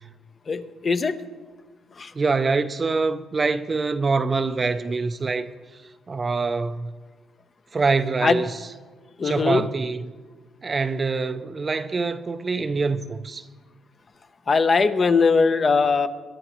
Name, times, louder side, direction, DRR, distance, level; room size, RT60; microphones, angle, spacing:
voice 1, 0.5-1.1 2.0-2.1 8.2-8.4 9.2-9.7 14.5-16.1, left 4 dB, 40° left, 0.8 m, -20 dB
voice 2, 2.1-5.5 6.1-6.9 7.7-8.7 9.2-10.1 10.6-13.5, right 4 dB, 35° right, 0.5 m, -25 dB
22.0 x 11.0 x 3.1 m
cardioid pair, 90°, 0 cm